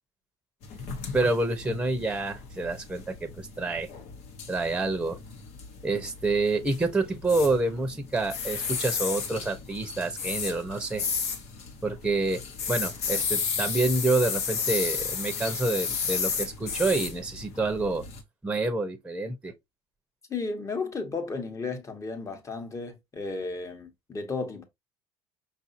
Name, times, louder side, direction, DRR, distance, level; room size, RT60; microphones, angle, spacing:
sound 1, 0.6-18.2, left 5 dB, 65° left, 1.1 m, -33 dB
voice 1, 1.1-3.9 4.5-5.2 5.8-11.0 11.8-12.4 12.7-18.0 18.4-19.5, right 2 dB, 10° right, 0.9 m, -27 dB
voice 2, 20.3-24.6, left 4 dB, 25° left, 1.2 m, -34 dB
5.5 x 2.7 x 2.7 m
supercardioid pair, 105°, 12 cm